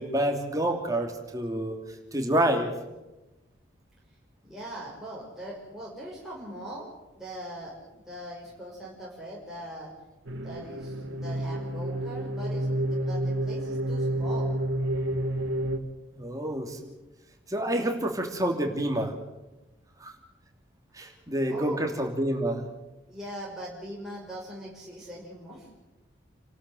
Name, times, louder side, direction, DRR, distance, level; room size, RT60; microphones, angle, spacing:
voice 1, 0.0-1.8 2.1-2.7 16.1-16.9 17.5-19.1 20.0-20.1 20.9-22.7, right 1 dB, 20° right, 3 dB, 2.9 m, -28 dB
voice 2, 4.4-9.9 10.4-14.5 21.0-21.2 21.5-21.8 23.1-25.7, equal, ahead, -6 dB, 5.4 m, -41 dB
sound 1, 10.3-15.8, right 1 dB, 90° right, 2.0 m, -29 dB
29.0 x 13.0 x 7.8 m, 1.0 s
head